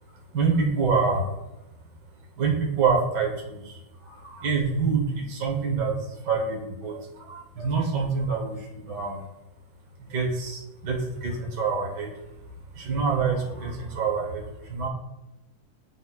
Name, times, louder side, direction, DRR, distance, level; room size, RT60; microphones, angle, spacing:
voice 1, 0.3-1.2 2.4-3.7 4.3-5.9 6.2-7.0 7.3-9.2 10.1-12.1 12.8-14.4 14.7-14.9, right 5 dB, 55° right, 0 dB, 1.2 m, -26 dB
12.0 x 4.1 x 2.4 m, 0.98 s
omnidirectional pair, 3.4 m